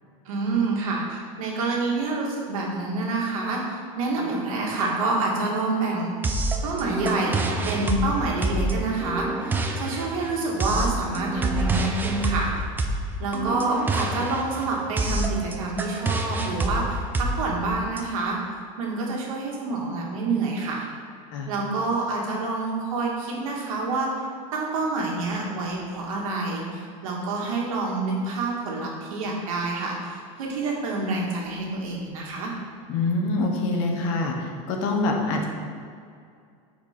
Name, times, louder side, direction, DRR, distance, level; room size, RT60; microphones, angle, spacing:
voice 1, 0.3-6.1 6.6-12.5 13.2-18.4 18.8-20.9 21.5-24.1 24.5-32.5, right 3 dB, 85° right, -2 dB, 1.8 m, -27 dB
sound 1, 6.2-18.0, right 2 dB, 10° right, 0.5 m, -27 dB
voice 2, 32.9-34.3 34.7-35.5, left 2 dB, 60° left, 1 dB, 1.3 m, -25 dB
8.3 x 4.7 x 4.4 m, 2.3 s
supercardioid pair, 140°, 17 cm